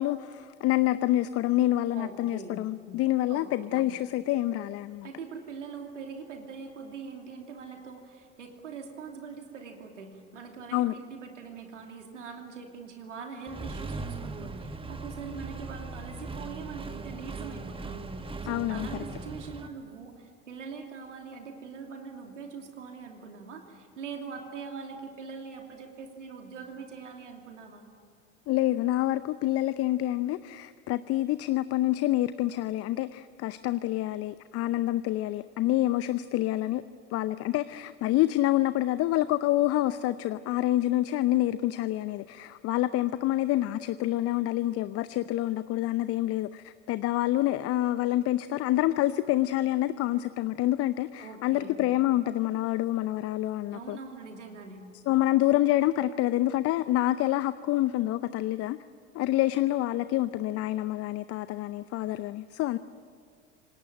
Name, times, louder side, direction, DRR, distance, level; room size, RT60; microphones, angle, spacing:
voice 1, 0.0-5.1 10.7-10.9 18.5-18.9 28.5-36.8 37.1-54.0 55.1-58.8 59.1-62.8, left 15 dB, 40° left, 14 dB, 0.7 m, -27 dB
voice 2, 1.9-2.5 3.3-3.8 5.0-18.1 18.4-27.8 51.2-51.8 53.7-54.8, right 5 dB, 80° right, 3 dB, 2.9 m, -42 dB
Accelerating revving vroom, 13.5-19.7, right 3 dB, 15° right, 1.5 m, -39 dB
27.0 x 19.0 x 9.0 m, 2.2 s
figure-of-eight pair, 70°, 36 cm